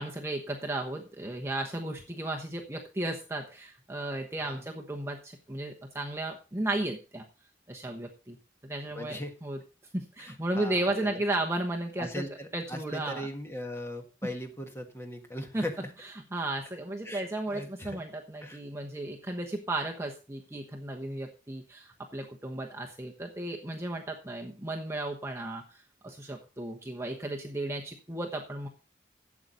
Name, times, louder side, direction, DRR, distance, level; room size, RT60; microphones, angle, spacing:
voice 1, 0.0-7.2 7.7-8.4 8.6-9.6 9.9-12.3 12.5-13.3 14.2-14.3 15.5-15.7 16.3-28.7, right 1 dB, 15° right, 1 dB, 1.1 m, -34 dB
voice 2, 8.9-9.3 10.2-11.2 12.0-15.9 17.0-18.0 18.4-18.6, left 1 dB, 15° left, 4 dB, 1.5 m, -39 dB
12.0 x 8.2 x 4.0 m, 0.33 s
head